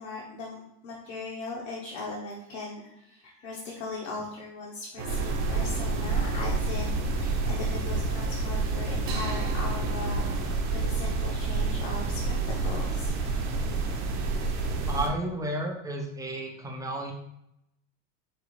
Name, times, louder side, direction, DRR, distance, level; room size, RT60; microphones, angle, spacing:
voice 1, 0.0-12.4 12.6-13.1, left 3 dB, 70° left, -4 dB, 1.1 m, -39 dB
sound 1, 5.0-10.5, left 2 dB, 85° right, 0.7 m, -36 dB
sound 2, 5.1-15.1, right 4 dB, 50° right, 0.9 m, -29 dB
voice 2, 14.9-17.1, right 1 dB, 10° right, 1 dB, 0.5 m, -32 dB
5.1 x 2.4 x 3.1 m, 0.80 s
supercardioid pair, 125°, 38 cm